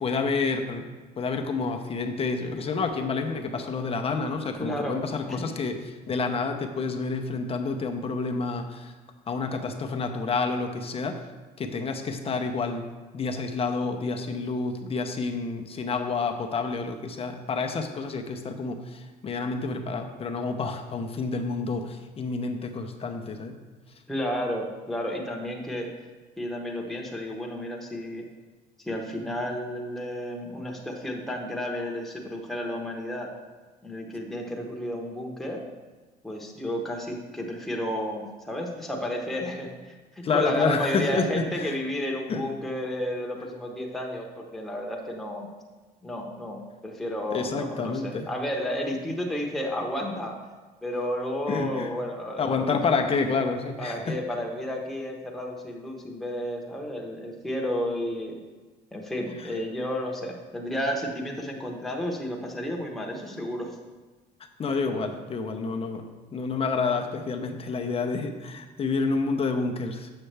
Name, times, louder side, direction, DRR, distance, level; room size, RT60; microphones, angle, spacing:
voice 1, 0.0-0.8 1.2-8.9 9.3-11.2 11.6-12.8 13.1-23.6 40.2-41.7 42.3-42.5 47.3-48.3 51.5-51.9 52.4-54.2 64.6-70.1, left 4 dB, 35° left, 4 dB, 0.7 m, -29 dB
voice 2, 4.6-5.0 5.3-5.5 24.1-25.9 26.4-28.3 28.8-33.3 33.8-35.6 36.2-45.5 46.0-50.4 50.8-52.8 53.8-58.4 58.9-63.7, equal, ahead, -1 dB, 1.0 m, -32 dB
6.8 x 6.6 x 3.3 m, 1.3 s
cardioid pair, 110°, 17 cm